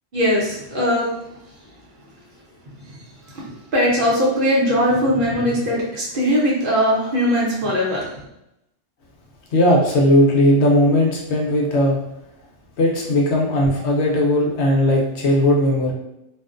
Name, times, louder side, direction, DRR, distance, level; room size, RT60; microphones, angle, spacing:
voice 1, 0.1-1.1 3.7-8.1, equal, 55° right, -5 dB, 0.8 m, -19 dB
voice 2, 9.5-12.0 12.8-15.9, left 1 dB, 70° left, -1 dB, 0.9 m, -17 dB
2.4 x 2.1 x 2.4 m, 0.83 s
omnidirectional pair, 1.2 m